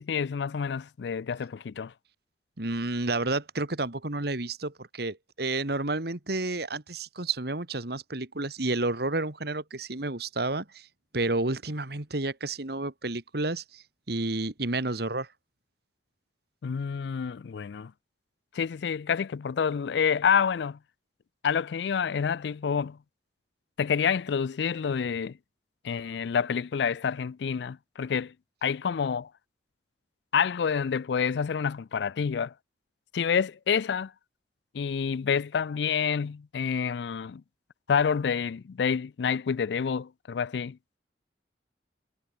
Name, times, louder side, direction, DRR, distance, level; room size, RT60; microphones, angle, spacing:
voice 1, 0.0-1.9 16.6-17.9 18.5-20.8 21.4-23.0 23.8-25.4 25.8-28.3 28.6-29.3 30.3-32.5 33.1-34.1 34.7-37.4 37.9-40.8, left 6 dB, 70° left, 0.4 m, -28 dB
voice 2, 2.6-10.9 11.1-15.3, right 2 dB, 60° right, 2.0 m, -30 dB
head